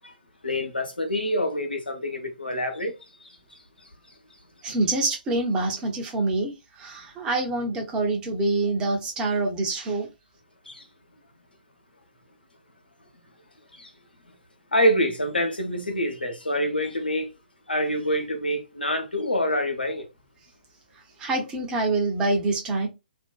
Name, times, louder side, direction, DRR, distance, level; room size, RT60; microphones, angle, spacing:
voice 1, 0.4-2.9 10.7-10.8 13.8-13.9 14.7-17.3 17.7-20.0, equal, 75° left, 0.7 m, -26 dB
voice 2, 4.6-10.1 21.2-22.9, right 2 dB, 15° right, 0.7 m, -26 dB
2.5 x 2.1 x 2.3 m
figure-of-eight pair, 130°, 5 cm